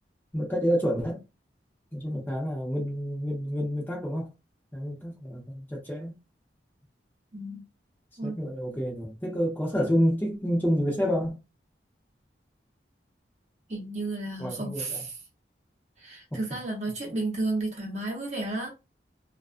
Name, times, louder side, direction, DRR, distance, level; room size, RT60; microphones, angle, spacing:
voice 1, 0.3-1.2 1.9-4.3 4.7-6.2 8.2-11.4 14.4-15.0 16.3-16.4, equal, 10° left, 0.7 m, -28 dB
voice 2, 13.7-15.2 16.0-18.7, right 2 dB, 40° right, 0.9 m, -32 dB
2.3 x 2.3 x 2.4 m
head